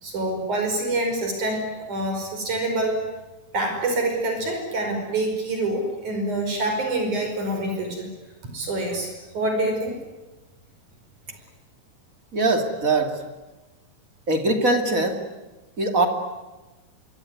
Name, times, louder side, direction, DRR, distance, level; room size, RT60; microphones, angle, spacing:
voice 1, 0.0-3.0 3.5-8.1 8.5-10.0, right 2 dB, 60° right, 3 dB, 6.7 m, -26 dB
voice 2, 12.3-13.2 14.3-15.2 15.8-16.1, right 2 dB, 25° right, 5 dB, 2.6 m, -21 dB
26.0 x 23.0 x 9.6 m, 1.1 s
omnidirectional pair, 3.9 m